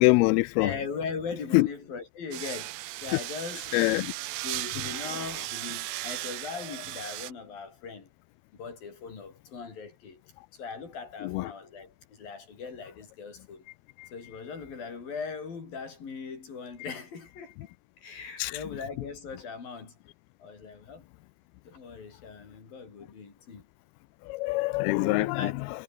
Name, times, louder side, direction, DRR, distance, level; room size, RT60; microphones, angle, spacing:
voice 1, 0.0-0.7 1.5-1.7 3.7-4.1 11.2-11.4 18.4-18.5 24.3-25.5, left 21 dB, 85° left, 2.5 m, -24 dB
voice 2, 0.6-3.8 4.4-8.1 8.5-10.2 10.5-13.7 14.1-17.7 18.0-20.0 20.4-21.0 21.6-23.6 25.0-25.5, left 5 dB, 65° left, 6.8 m, -39 dB
sound 1, 2.3-7.3, right 18 dB, 85° right, 1.9 m, -36 dB
omnidirectional pair, 4.5 m